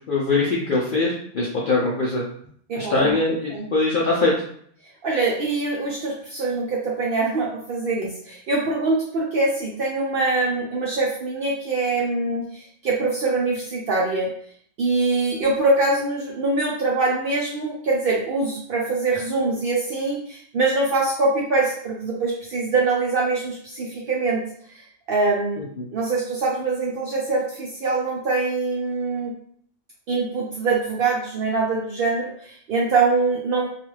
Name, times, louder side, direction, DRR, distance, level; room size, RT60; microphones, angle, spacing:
voice 1, 0.1-2.2 2.7-4.3 25.6-25.9, left 3 dB, 70° left, -4 dB, 0.4 m, -22 dB
voice 2, 2.7-3.1 3.5-3.7 5.0-14.3 14.8-24.4 24.7-25.6 25.9-29.3 30.1-33.7, right 3 dB, 85° right, -4 dB, 0.4 m, -23 dB
2.4 x 2.4 x 3.1 m, 0.62 s
omnidirectional pair, 1.5 m